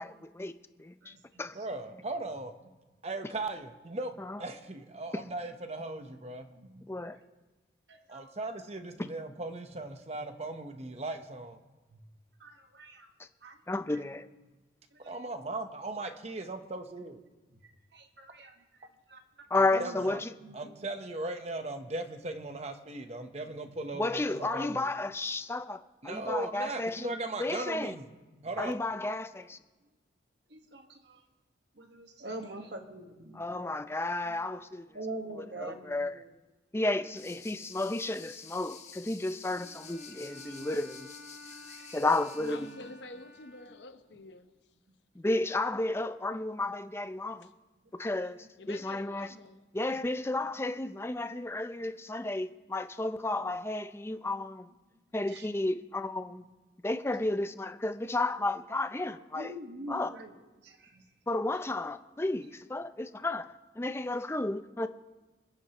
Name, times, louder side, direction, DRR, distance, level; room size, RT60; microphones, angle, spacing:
voice 1, 0.0-1.1 1.4-1.5 4.2-4.4 6.9-7.2 13.2-13.3 13.7-14.3 19.5-20.3 23.9-27.1 27.4-27.9 28.6-29.6 33.3-34.9 35.4-36.2 36.7-41.1 41.9-42.7 45.2-47.5 47.9-49.3 49.7-54.7 55.1-56.5 56.8-59.5 59.9-60.2 61.3-64.9, left 2 dB, 15° left, 0.5 m, -32 dB
voice 2, 1.0-1.5 6.5-6.8 7.9-8.3 11.9-12.0 12.4-13.1 13.4-13.6 17.9-18.5 19.1-19.2 19.7-20.9 30.5-31.2 31.8-33.6 34.9-36.3 41.5-42.0 42.4-42.9 55.3-55.5 59.3-60.3 60.6-61.0, right 2 dB, 65° right, 1.5 m, -44 dB
voice 3, 1.5-2.5 3.0-4.1 4.4-6.5 8.1-11.6 15.0-17.2 19.5-20.2 20.5-24.8 26.0-28.1 28.4-28.7, right 2 dB, 35° right, 0.9 m, -38 dB
voice 4, 32.4-32.8 42.5-44.5 47.4-47.5 48.6-49.6, left 2 dB, 70° left, 0.9 m, -49 dB
sound 1, 37.2-42.8, left 7 dB, 40° left, 1.2 m, -50 dB
Bowed string instrument, 39.5-44.1, left 1 dB, 15° right, 2.0 m, -52 dB
27.5 x 9.7 x 3.0 m
head